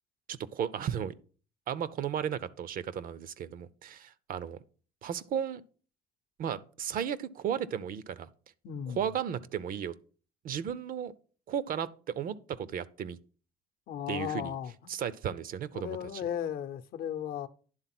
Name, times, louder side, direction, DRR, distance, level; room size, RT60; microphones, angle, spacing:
voice 1, 0.3-1.1 1.7-4.6 5.0-5.6 6.4-8.3 8.9-9.9 10.4-11.1 11.5-13.2 14.1-14.5 14.9-16.0, right 8 dB, 55° right, 0.6 m, -34 dB
voice 2, 8.6-9.1 13.9-14.9 15.7-17.5, left 9 dB, 65° left, 0.7 m, -36 dB
10.5 x 3.7 x 5.9 m
cardioid pair, 110°, 17 cm